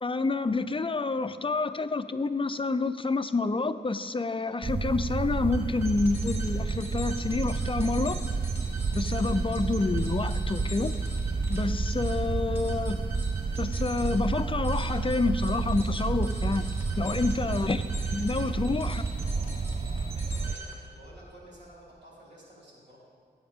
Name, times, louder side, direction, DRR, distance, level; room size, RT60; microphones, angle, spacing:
voice 1, 0.0-8.2 8.9-10.9 11.5-13.0 13.6-16.7 17.0-17.8 18.1-19.1, left 3 dB, 30° left, 12 dB, 0.5 m, -28 dB
sound 1, 4.6-20.5, right 4 dB, 30° right, 0.4 m, -30 dB
sound 2, 5.5-21.0, right 1 dB, 15° right, 2.8 m, -43 dB
voice 2, 16.9-17.3 18.2-18.6 19.1-23.0, equal, 85° right, -6 dB, 3.5 m, -52 dB
17.5 x 8.7 x 3.6 m, 2.1 s
wide cardioid pair, 75°, 18 cm